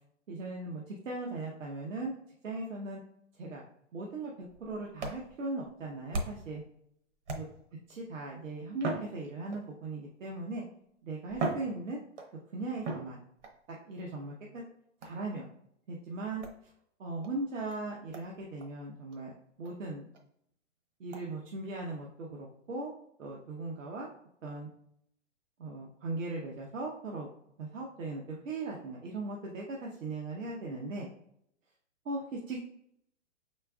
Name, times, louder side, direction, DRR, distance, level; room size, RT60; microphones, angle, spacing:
voice 1, 0.3-2.1 2.4-3.0 3.3-3.6 3.9-6.6 7.3-7.5 7.9-10.6 11.0-12.0 12.5-13.2 13.8-14.6 15.0-15.5 15.9-16.4 17.0-19.3 19.6-20.1 21.0-22.9 23.2-24.1 24.4-24.7 25.6-27.3 27.6-31.1 32.0-32.6, right 2 dB, 90° right, -2 dB, 1.0 m, -38 dB
sound 1, 4.4-6.6 7.2-7.8 8.7-9.8 10.7-10.8 11.3-12.4 12.8-13.6 15.0-15.3 16.4-16.6 17.2-17.3 17.7-17.8 18.1-18.3 18.6-18.7 19.1-19.2 19.6-19.7 20.1-20.2 21.1-21.3, right 3 dB, 65° right, 1.1 m, -38 dB
5.0 x 4.3 x 2.3 m, 0.72 s
hypercardioid pair, 150°, 37 cm